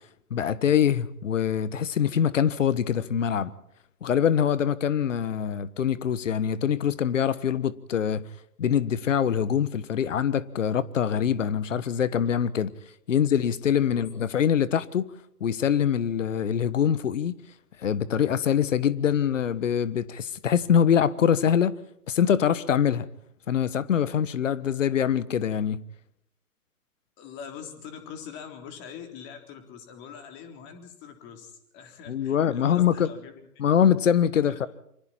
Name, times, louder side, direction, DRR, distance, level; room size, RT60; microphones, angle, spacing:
voice 1, 0.3-3.5 4.0-8.2 8.6-12.7 13.1-15.1 15.4-17.4 17.8-21.7 22.1-23.0 23.5-25.8 32.1-33.1 33.6-34.7, left 8 dB, 55° left, 1.4 m, -24 dB
voice 2, 27.2-33.4 34.3-34.6, left 7 dB, 25° left, 3.6 m, -43 dB
27.5 x 25.0 x 4.5 m
figure-of-eight pair, 135°, 46 cm